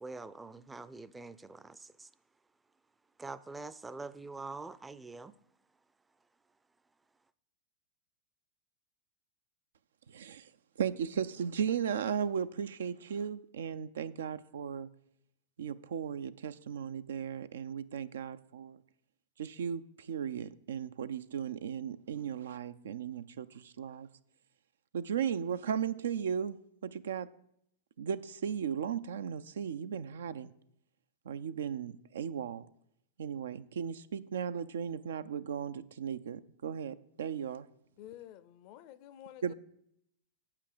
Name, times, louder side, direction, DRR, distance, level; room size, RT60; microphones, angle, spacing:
voice 1, 0.0-2.1 3.2-5.3, right 3 dB, 10° right, 0.4 m, -45 dB
voice 2, 10.1-10.5 10.8-14.9 15.6-18.8 19.4-24.1 24.9-27.3 28.0-30.5 31.3-32.7 33.2-37.7 39.4-39.5, right 7 dB, 80° right, 0.4 m, -36 dB
voice 3, 38.0-39.5, left 12 dB, 50° left, 0.5 m, -50 dB
7.6 x 5.8 x 6.6 m
hypercardioid pair, 110°, 0 cm